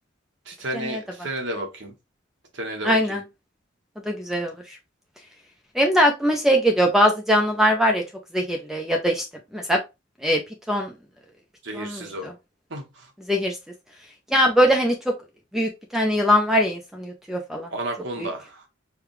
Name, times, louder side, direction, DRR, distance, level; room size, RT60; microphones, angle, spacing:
voice 1, 0.5-1.9 2.5-3.2 11.6-12.3 12.7-13.1 17.7-18.6, right 1 dB, 65° right, 1.3 m, -32 dB
voice 2, 2.8-3.2 4.1-4.5 5.7-8.0 8.3-9.2 9.5-9.8 10.2-10.4 10.7-10.9 11.7-12.3 13.3-13.6 14.3-15.1 15.5-17.7 18.2-18.3, equal, ahead, 0.6 m, -21 dB
4.9 x 2.4 x 3.2 m
head